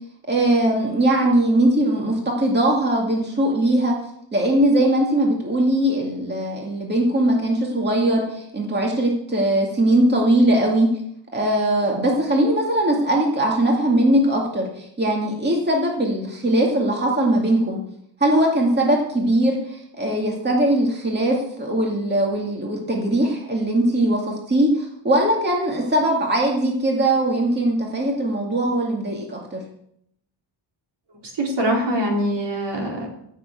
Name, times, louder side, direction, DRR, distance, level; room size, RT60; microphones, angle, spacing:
voice 1, 0.3-3.9 4.3-10.9 11.3-17.8 18.2-29.6, right 1 dB, 20° right, -1 dB, 2.2 m, -20 dB
voice 2, 31.4-33.1, equal, 60° right, 0 dB, 4.3 m, -23 dB
15.5 x 6.9 x 8.4 m, 0.74 s
wide cardioid pair, 175°, 45 cm